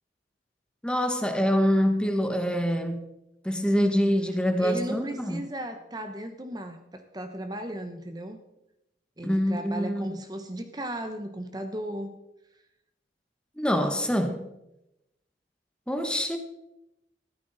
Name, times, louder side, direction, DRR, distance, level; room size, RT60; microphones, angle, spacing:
voice 1, 0.8-3.0 3.4-5.4 9.2-10.1 13.6-14.5 15.9-16.4, equal, 5° left, 6 dB, 1.1 m, -25 dB
voice 2, 4.6-8.4 9.2-12.1, right 1 dB, 20° right, 6 dB, 0.8 m, -36 dB
14.5 x 12.5 x 4.0 m, 0.88 s
head